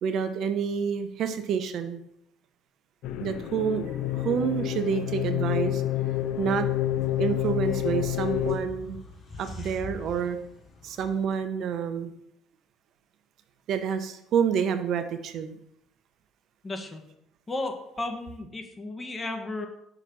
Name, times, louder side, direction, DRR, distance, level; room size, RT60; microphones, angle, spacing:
voice 1, 0.0-2.0 3.2-5.8 6.4-6.7 7.2-9.0 9.4-10.4 10.8-12.1 13.7-15.6, right 7 dB, 60° right, 8 dB, 0.7 m, -28 dB
sound 1, 3.0-8.6, left 13 dB, 65° left, 0.5 m, -28 dB
sound 2, 6.1-11.3, left 3 dB, 45° left, 1.9 m, -45 dB
voice 2, 16.6-17.0 17.5-19.7, left 2 dB, 25° left, 4 dB, 1.5 m, -34 dB
6.1 x 3.9 x 6.0 m, 0.76 s
hypercardioid pair, 60°, 0 cm